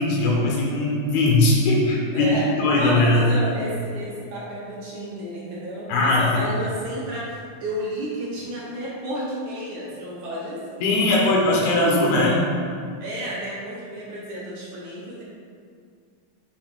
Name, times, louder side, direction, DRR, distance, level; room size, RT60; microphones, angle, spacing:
voice 1, 0.0-2.3 2.6-3.2 5.9-6.2 10.8-12.5, left 2 dB, 85° left, -3 dB, 2.8 m, -19 dB
voice 2, 2.1-2.5 2.7-10.8 13.0-15.2, right 1 dB, 70° right, -6 dB, 1.9 m, -32 dB
7.5 x 2.6 x 5.2 m, 2.2 s
omnidirectional pair, 4.3 m